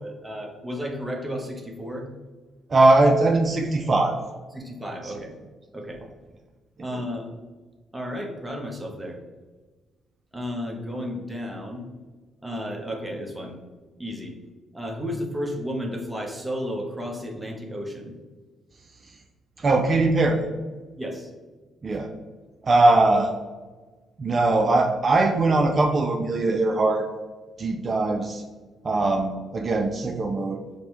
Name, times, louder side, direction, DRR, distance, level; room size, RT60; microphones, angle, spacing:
voice 1, 0.0-2.1 4.5-5.3 5.7-6.0 6.8-7.3 7.9-9.2 10.3-11.8 12.4-13.6 14.0-14.4 14.7-18.1 21.0-21.3, equal, 10° right, 1 dB, 0.8 m, -33 dB
voice 2, 2.7-4.2 19.6-20.4 21.8-22.1 22.6-23.3 24.2-27.1 27.6-28.4 28.8-30.6, right 2 dB, 40° right, 3 dB, 0.4 m, -20 dB
5.2 x 2.2 x 3.0 m, 1.3 s
cardioid pair, 90°, 0 cm